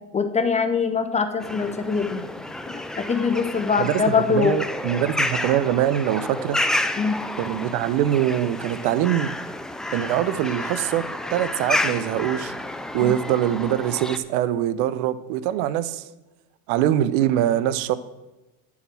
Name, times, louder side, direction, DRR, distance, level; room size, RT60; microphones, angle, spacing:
voice 1, 0.1-2.3 3.0-4.5 7.0-7.2 13.0-13.1, left 5 dB, 15° left, 8 dB, 0.7 m, -23 dB
sound 1, 1.4-14.2, left 1 dB, ahead, 0.3 m, -30 dB
voice 2, 3.8-6.6 7.4-9.3 9.9-11.0 11.3-12.5 12.9-16.1 16.7-18.0, right 11 dB, 60° right, 15 dB, 0.8 m, -23 dB
10.5 x 7.3 x 6.1 m, 1.0 s
supercardioid pair, 115°, 39 cm